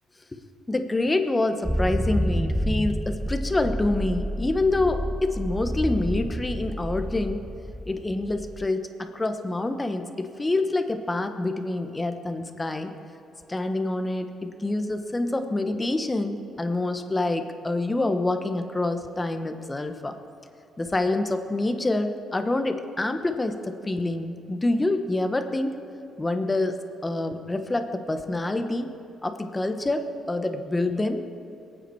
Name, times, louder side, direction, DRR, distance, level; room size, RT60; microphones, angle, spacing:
voice 1, 0.7-7.5 7.9-13.0 13.5-20.2 20.8-25.8 26.2-26.8 27.0-28.9 29.2-31.2, left 2 dB, 20° left, 7 dB, 1.2 m, -27 dB
sound 1, 1.6-8.7, equal, ahead, 0.5 m, -29 dB
21.5 x 9.1 x 4.8 m, 2.7 s
cardioid pair, 90°, 0 cm